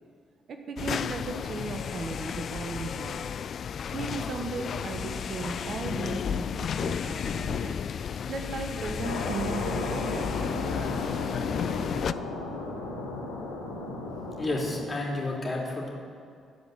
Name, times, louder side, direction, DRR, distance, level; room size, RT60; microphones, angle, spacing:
voice 1, 0.5-3.2 3.9-7.7 8.3-11.0, right 4 dB, 55° right, 5 dB, 1.1 m, -36 dB
sound 1, 0.8-12.1, left 7 dB, 55° left, 0.3 m, -32 dB
sound 2, 9.0-14.8, left 2 dB, 85° left, 1.4 m, -35 dB
voice 2, 14.4-15.9, left 2 dB, 35° left, -1 dB, 2.9 m, -30 dB
14.5 x 5.1 x 8.1 m, 2.2 s
hypercardioid pair, 45°, 0 cm